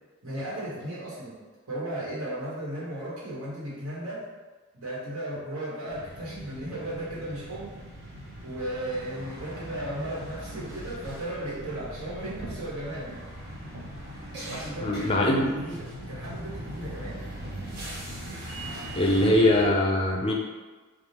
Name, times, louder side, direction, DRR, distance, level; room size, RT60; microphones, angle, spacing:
voice 1, 0.2-1.4 1.7-4.2 4.7-7.7 8.4-13.1 14.5-17.2, right 1 dB, 80° right, -6 dB, 1.3 m, -35 dB
sound 1, 5.9-19.7, right 1 dB, 50° right, 0.8 m, -40 dB
voice 2, 14.8-15.5 19.0-20.3, left 1 dB, 25° left, 0 dB, 0.4 m, -22 dB
3.5 x 2.4 x 4.2 m, 1.3 s
head